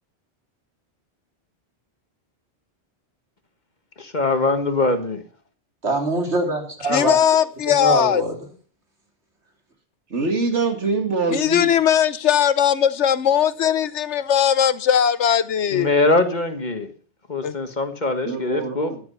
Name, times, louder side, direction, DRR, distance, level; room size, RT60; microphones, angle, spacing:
voice 1, 4.0-5.2 15.7-16.9 17.3-18.9, left 2 dB, 40° left, 1.7 m, -22 dB
voice 2, 5.8-7.2 7.7-8.3, right 2 dB, 75° right, 3.7 m, -23 dB
voice 3, 6.9-8.2 11.3-15.9 17.4-17.6, left 9 dB, 80° left, 1.1 m, -19 dB
voice 4, 10.1-11.7 18.2-19.0, right 3 dB, 90° right, 2.5 m, -24 dB
13.5 x 10.5 x 5.7 m
omnidirectional pair, 1.2 m